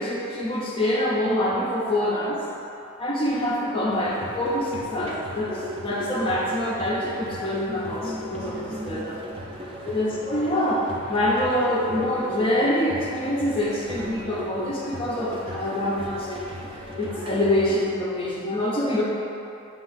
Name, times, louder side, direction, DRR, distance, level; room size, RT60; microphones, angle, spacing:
voice 1, 0.0-2.4 3.0-9.2 9.8-16.4 17.0-19.0, left 1 dB, 25° left, -4 dB, 0.6 m, -25 dB
sound 1, 3.9-17.9, equal, 25° right, 0.5 m, -36 dB
8.3 x 3.0 x 4.0 m, 2.8 s
head